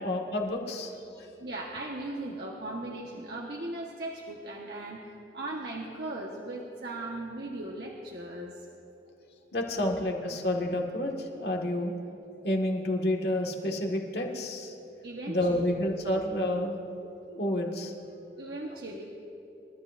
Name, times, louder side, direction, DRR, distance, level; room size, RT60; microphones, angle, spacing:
voice 1, 0.0-1.3 9.5-11.9 12.4-14.7 15.3-16.8 17.0-17.9, left 1 dB, 70° left, 1 dB, 1.7 m, -30 dB
voice 2, 1.4-8.6 9.6-9.9 15.0-15.6 18.3-19.0, right 2 dB, 70° right, -2 dB, 1.3 m, -38 dB
29.0 x 13.0 x 2.6 m, 2.9 s
head